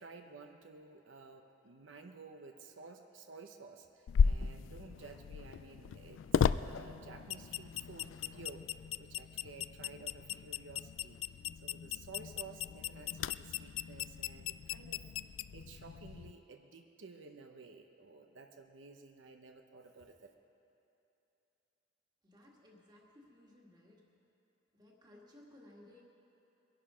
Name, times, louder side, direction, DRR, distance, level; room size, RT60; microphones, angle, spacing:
voice 1, 0.0-11.2 11.6-20.3, right 4 dB, 80° right, 4 dB, 0.8 m, -53 dB
sound 1, 4.1-16.3, left 7 dB, 90° left, 0.3 m, -36 dB
voice 2, 22.2-24.1 24.7-26.0, left 1 dB, 20° right, -2 dB, 1.9 m, -59 dB
22.0 x 11.0 x 5.0 m, 2.9 s
head